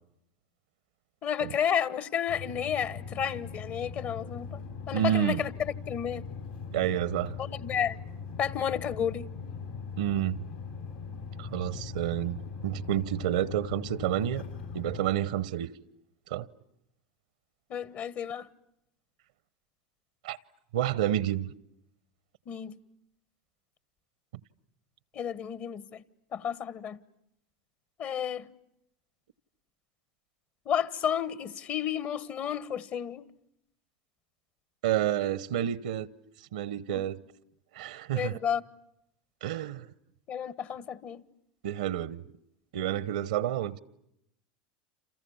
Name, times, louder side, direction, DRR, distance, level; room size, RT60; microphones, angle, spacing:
voice 1, 1.2-5.5 5.9-6.2 7.4-8.0 8.4-9.3 17.7-18.5 22.5-22.8 25.1-26.0 26.3-27.0 28.0-28.5 30.6-33.3 36.9-37.0 38.1-38.6 40.3-41.2, left 8 dB, 45° left, 1.3 m, -31 dB
sound 1, 2.3-15.1, left 5 dB, 85° left, 7.0 m, -40 dB
voice 2, 4.9-5.4 6.7-7.3 10.0-10.4 11.4-14.4 14.7-15.7 16.3-16.5 20.2-20.4 20.7-21.5 34.8-36.1 36.5-37.2 37.7-38.4 39.4-39.9 41.6-42.2 42.7-43.8, right 11 dB, 75° right, 1.0 m, -29 dB
29.0 x 28.0 x 7.2 m
hypercardioid pair, 90°, 4 cm